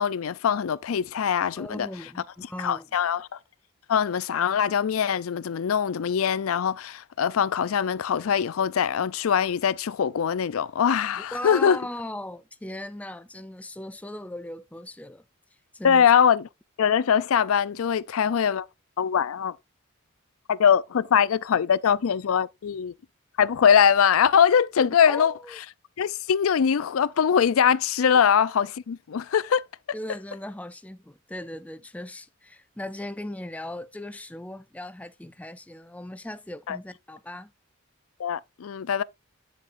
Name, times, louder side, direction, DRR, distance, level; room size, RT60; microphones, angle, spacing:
voice 1, 0.0-1.9 2.6-3.3 3.9-11.8 15.8-16.5 16.8-18.7 19.0-19.6 20.5-22.9 23.4-25.3 26.0-29.6 36.7-36.8 38.2-39.0, left 7 dB, 80° left, 0.4 m, -22 dB
voice 2, 1.6-2.9 11.2-15.2 15.7-16.1 25.0-25.6 28.1-28.2 29.9-37.5, left 1 dB, 5° left, 0.4 m, -38 dB
9.3 x 7.5 x 2.5 m
head